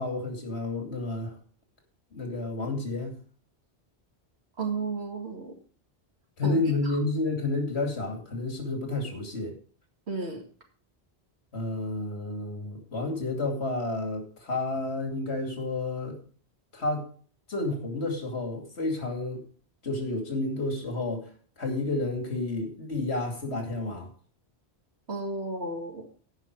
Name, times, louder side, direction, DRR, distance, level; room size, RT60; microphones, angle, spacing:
voice 1, 0.0-1.3 2.1-3.2 6.4-9.5 11.5-16.2 16.7-17.1 17.5-19.4 19.8-21.2 21.6-24.1, left 2 dB, 85° left, 2 dB, 2.9 m, -30 dB
voice 2, 4.6-5.5 6.4-6.6 10.1-10.4 25.1-26.1, right 3 dB, 80° right, 1 dB, 2.5 m, -33 dB
16.5 x 5.6 x 4.7 m, 0.43 s
omnidirectional pair, 1.1 m